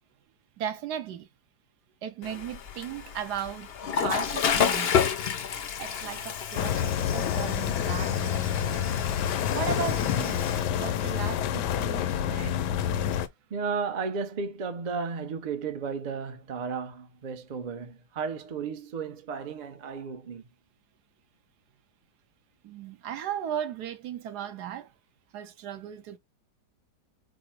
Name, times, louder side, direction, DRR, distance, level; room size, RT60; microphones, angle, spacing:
voice 1, 0.6-1.3 2.0-3.7 3.9-4.9 5.8-9.0 9.5-12.6 22.6-24.9 25.3-26.2, right 9 dB, 75° right, 1.2 m, -36 dB
Water / Toilet flush, 2.2-10.6, left 7 dB, 65° left, 0.6 m, -30 dB
sound 1, 6.6-13.3, left 9 dB, 80° left, 1.2 m, -28 dB
voice 2, 13.5-20.4, right 5 dB, 55° right, 0.4 m, -34 dB
4.9 x 2.0 x 4.3 m
omnidirectional pair, 1.8 m